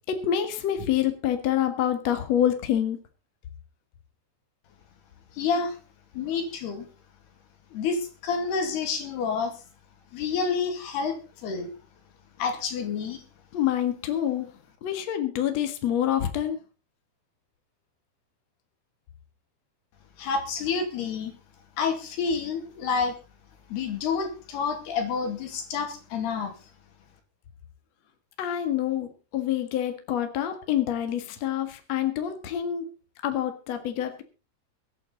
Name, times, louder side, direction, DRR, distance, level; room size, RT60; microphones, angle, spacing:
voice 1, 0.1-3.0 13.5-14.5 14.8-16.6 28.4-32.9 33.2-34.2, left 10 dB, 50° left, 7 dB, 2.2 m, -27 dB
voice 2, 5.3-5.8 6.1-6.9 7.7-9.5 10.1-11.7 12.4-13.2 20.2-21.3 21.8-23.2 23.7-26.5, left 5 dB, 70° left, 5 dB, 4.3 m, -29 dB
23.5 x 9.0 x 4.0 m, 0.33 s
omnidirectional pair, 4.8 m